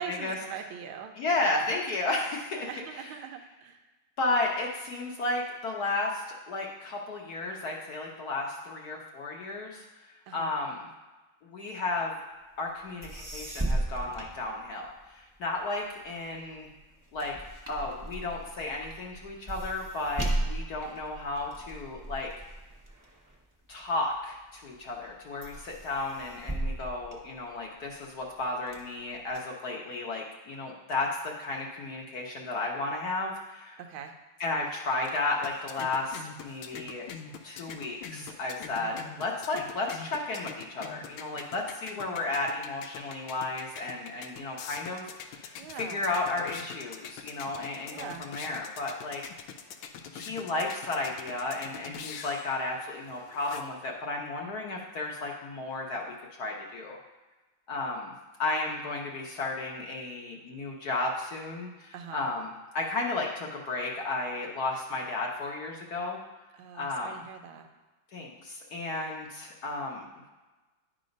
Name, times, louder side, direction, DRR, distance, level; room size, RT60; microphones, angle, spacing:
voice 1, 0.0-1.4 2.5-3.8 10.3-10.5 20.3-20.5 33.8-34.1 38.8-39.0 45.6-46.0 47.9-48.3 61.9-62.3 66.5-67.7, right 7 dB, 85° right, 6 dB, 1.6 m, -42 dB
voice 2, 1.2-3.0 4.2-10.9 11.4-12.1 12.6-16.7 17.1-17.3 17.7-22.3 23.7-33.8 34.4-37.1 37.4-49.2 50.1-57.0 57.7-58.1 58.4-66.2 66.7-67.2 68.1-70.1, left 2 dB, 60° left, -1 dB, 1.2 m, -33 dB
sound 1, 12.7-12.8 13.0-15.1 15.6-24.2 24.7-25.1 25.4-27.9 28.4-29.4, right 1 dB, 20° right, 0.5 m, -36 dB
sound 2, 34.7-53.9, left 6 dB, 90° left, 1.5 m, -45 dB
10.5 x 3.9 x 5.2 m, 1.2 s
omnidirectional pair, 2.2 m